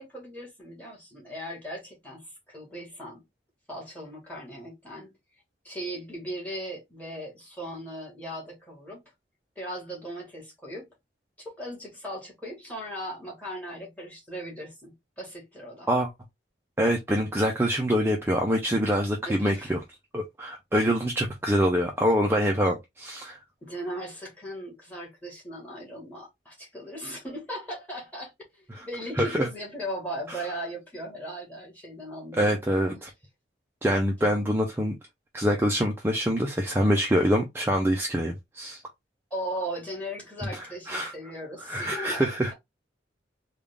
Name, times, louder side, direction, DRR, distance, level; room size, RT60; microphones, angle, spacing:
voice 1, 0.0-3.2 3.7-5.1 5.6-9.0 9.5-10.9 11.4-15.9 19.2-19.8 23.6-32.6 32.9-33.0 34.2-34.6 39.3-42.2, equal, 10° left, 1.6 m, -38 dB
voice 2, 16.8-19.8 20.1-23.4 28.7-28.8 29.2-29.5 30.3-30.4 32.4-33.1 33.8-35.0 35.3-38.8 40.5-41.1 41.6-42.5, equal, 10° right, 0.5 m, -25 dB
3.5 x 2.4 x 3.4 m
head